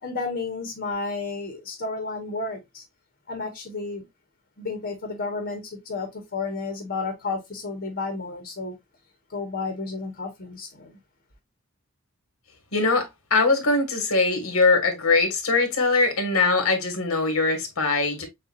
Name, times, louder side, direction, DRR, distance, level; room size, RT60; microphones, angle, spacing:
voice 1, 0.0-2.8 3.3-4.0 4.6-8.7 9.3-11.0, left 3 dB, 50° left, 1.1 m, -32 dB
voice 2, 12.7-18.2, left 3 dB, 75° left, 1.6 m, -22 dB
6.7 x 2.6 x 2.5 m
head